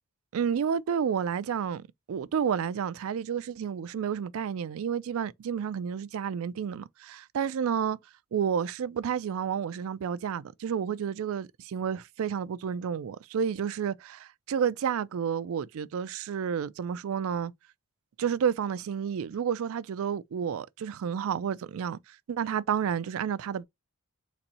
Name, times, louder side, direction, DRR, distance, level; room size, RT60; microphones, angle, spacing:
voice 1, 0.3-8.0 8.3-17.5 18.2-23.7, right 7 dB, 65° right, 0.3 m, -30 dB
4.1 x 2.6 x 4.1 m
head